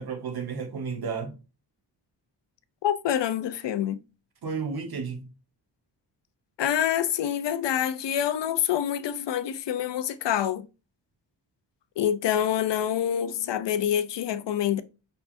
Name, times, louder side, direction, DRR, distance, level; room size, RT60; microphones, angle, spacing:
voice 1, 0.0-1.3 4.4-5.3, right 5 dB, 60° right, 1.3 m, -32 dB
voice 2, 2.8-4.0 6.6-10.7 12.0-14.8, left 10 dB, 80° left, 0.7 m, -26 dB
5.5 x 3.4 x 2.6 m
cardioid pair, 100°, 42 cm